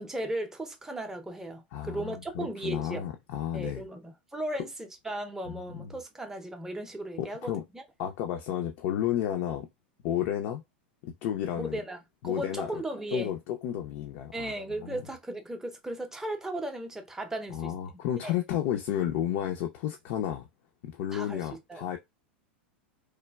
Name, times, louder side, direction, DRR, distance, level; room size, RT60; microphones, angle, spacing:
voice 1, 0.0-3.1 3.5-7.8 11.6-13.4 14.3-18.4 21.1-21.9, right 1 dB, 10° right, 0.6 m, -36 dB
voice 2, 1.7-3.8 5.5-5.9 7.2-7.6 8.0-9.7 10.0-10.6 11.0-11.8 12.2-12.7 13.1-14.5 14.8-15.0 17.5-20.5 20.8-22.0, left 10 dB, 60° left, 0.5 m, -32 dB
3.2 x 2.2 x 2.2 m
hypercardioid pair, 100°, 6 cm